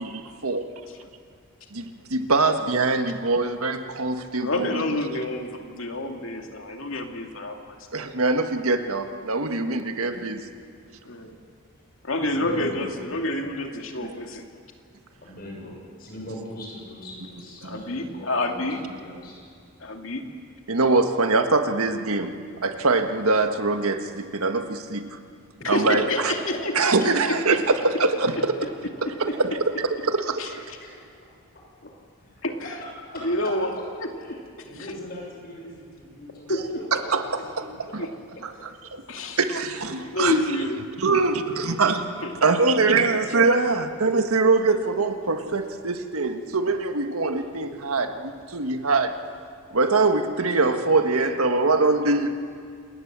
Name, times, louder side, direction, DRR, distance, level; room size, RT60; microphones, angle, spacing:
voice 1, 0.0-0.6 1.7-1.8 2.1-4.8 7.9-10.4 17.6-17.8 20.7-22.3 22.6-25.2 25.7-26.3 26.7-27.6 28.0-28.6 29.2-30.4 36.9-37.6 37.9-38.1 38.4-39.0 39.4-40.4 41.0-42.0 42.4-49.2 49.7-52.3, right 3 dB, 85° right, 7 dB, 1.6 m, -23 dB
voice 2, 4.4-7.8 11.0-11.4 12.0-14.5 17.6-18.8 19.8-20.2 25.6-26.7 27.3-27.6 30.4-30.8 32.4-32.8 33.2-33.7 34.0-34.4 34.8-34.9 36.5-36.8 38.0-38.1 39.1-39.4 39.9-40.8 42.2-42.3, left 1 dB, 65° left, 3 dB, 2.4 m, -28 dB
voice 3, 12.3-12.9 15.2-19.4 25.6-25.7 30.5-30.9 32.2-32.3 32.6-32.8 33.1-33.3 34.2-34.4 34.6-37.7 43.4-44.0 47.3-47.8, left 1 dB, 45° left, -1 dB, 6.6 m, -40 dB
27.5 x 21.0 x 7.5 m, 2.2 s
head